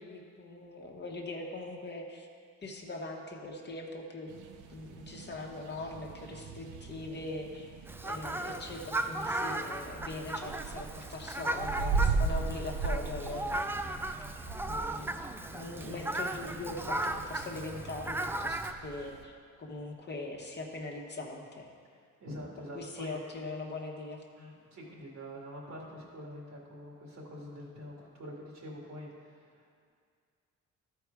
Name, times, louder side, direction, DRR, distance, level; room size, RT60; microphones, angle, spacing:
voice 1, 0.0-2.3 2.6-4.4 4.7-7.7 8.0-14.0 14.7-15.2 15.5-21.7 22.7-24.2, left 2 dB, 35° left, 0 dB, 1.2 m, -41 dB
sound 1, 4.3-19.2, right 4 dB, 80° right, 0.7 m, -38 dB
Fowl, 7.9-18.7, right 1 dB, 10° right, 0.4 m, -36 dB
voice 2, 15.8-16.1 21.9-23.2 24.4-29.9, equal, 65° right, -2 dB, 2.3 m, -46 dB
12.5 x 4.7 x 4.7 m, 2.2 s
cardioid pair, 90°, 30 cm